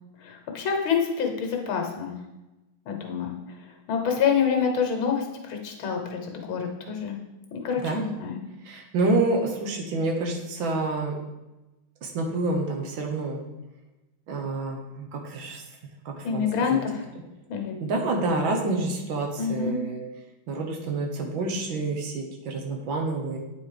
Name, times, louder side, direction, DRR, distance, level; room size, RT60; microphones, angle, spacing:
voice 1, 0.2-2.2 2.9-3.3 3.9-7.2 7.5-8.4 16.2-17.0 17.5-17.8 19.4-19.8, left 6 dB, 70° left, 3 dB, 1.8 m, -27 dB
voice 2, 8.6-11.2 12.0-13.4 14.3-15.6 16.0-16.4 16.7-16.8 17.8-20.0 20.5-23.4, right 2 dB, 65° right, 2 dB, 1.7 m, -28 dB
8.7 x 4.2 x 4.8 m, 1.0 s
omnidirectional pair, 2.4 m